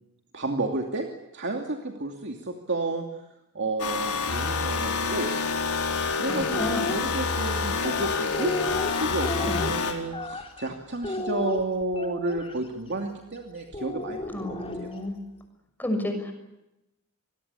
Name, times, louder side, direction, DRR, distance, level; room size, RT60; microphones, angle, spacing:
voice 1, 0.3-1.1 1.3-3.0 3.5-5.3 6.1-8.6 9.0-14.9, right 2 dB, 55° right, 2 dB, 2.7 m, -31 dB
sound 1, 3.8-9.9, left 4 dB, 85° left, 4.7 m, -27 dB
voice 2, 6.3-6.9 9.5-9.7 14.3-15.2 15.8-16.3, left 1 dB, 10° left, 5 dB, 6.2 m, -31 dB
sound 2, 6.4-7.0 7.8-10.7 11.0-12.5 13.7-15.1, left 2 dB, 25° left, 4.0 m, -33 dB
27.0 x 21.5 x 8.4 m, 0.91 s
head